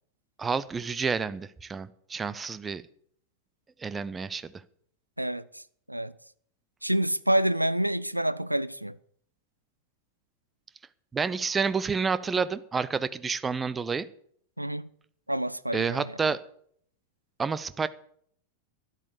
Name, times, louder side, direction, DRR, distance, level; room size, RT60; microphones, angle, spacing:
voice 1, 0.4-2.8 3.8-4.6 11.1-14.1 15.7-16.4 17.4-17.9, right 5 dB, 15° right, 0.7 m, -29 dB
voice 2, 5.2-5.6 5.9-6.1 6.8-9.0 14.6-14.9 15.3-16.2, right 1 dB, 85° right, 0.5 m, -28 dB
12.0 x 11.0 x 6.9 m
figure-of-eight pair, 90°, 0 cm